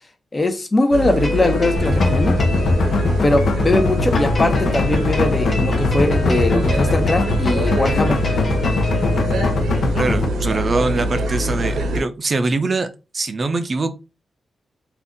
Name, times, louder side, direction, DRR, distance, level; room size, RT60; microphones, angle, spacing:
voice 1, 0.3-2.4 3.2-8.2, left 2 dB, 35° left, 0.8 m, -20 dB
sound 1, 0.9-12.0, right 1 dB, 85° right, 0.8 m, -24 dB
sound 2, 1.2-9.6, left 3 dB, 50° left, 1.1 m, -30 dB
sound 3, 1.8-10.2, left 3 dB, 75° left, 0.7 m, -21 dB
voice 2, 9.9-12.9 13.1-13.9, right 3 dB, 50° right, 0.5 m, -22 dB
2.5 x 2.4 x 3.6 m
cardioid pair, 55°, 0 cm